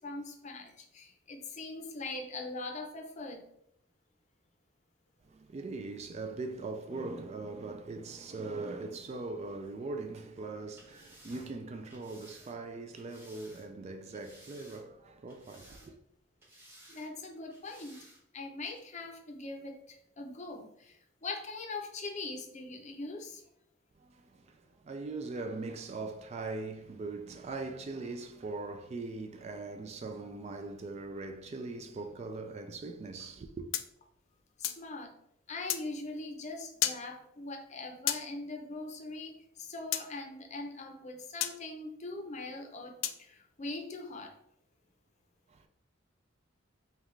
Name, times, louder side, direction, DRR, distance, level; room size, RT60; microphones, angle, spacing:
voice 1, 0.0-3.4 16.9-18.1 18.3-23.4 34.6-35.1 35.5-44.3, left 2 dB, 40° left, 0.6 m, -42 dB
voice 2, 5.2-16.0 24.0-33.7 45.5-45.7, right 3 dB, 35° right, 0.3 m, -41 dB
sound 1, 10.8-13.7 14.1-15.0 15.3-16.1 16.4-17.1 17.5-18.2 18.7-18.8, right 1 dB, 10° right, 1.1 m, -57 dB
sound 2, 33.7-34.9 35.7-35.8 36.8-37.0 38.1-38.2 39.9-40.1 41.4-41.6 43.0-43.2, left 12 dB, 80° left, 0.3 m, -32 dB
5.5 x 2.3 x 3.1 m
head